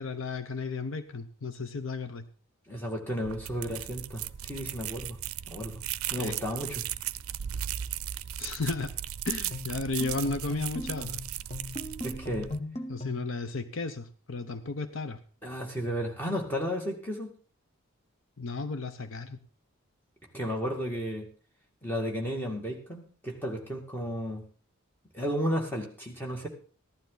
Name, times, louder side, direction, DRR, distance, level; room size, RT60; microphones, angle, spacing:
voice 1, 0.0-2.2 6.2-6.4 8.4-8.9 9.2-11.2 12.9-15.2 18.4-19.4, left 3 dB, 65° left, 10 dB, 0.8 m, -34 dB
voice 2, 2.7-5.2 5.5-5.7 6.1-6.8 12.0-12.5 15.4-17.3 20.3-21.2 21.8-24.4 25.1-26.5, equal, 10° left, 0 dB, 2.2 m, -33 dB
sound 1, 3.2-12.6, right 11 dB, 75° right, 0.5 m, -37 dB
sound 2, 9.5-13.4, left 2 dB, 30° left, 1.1 m, -38 dB
15.0 x 11.5 x 4.0 m, 0.41 s
head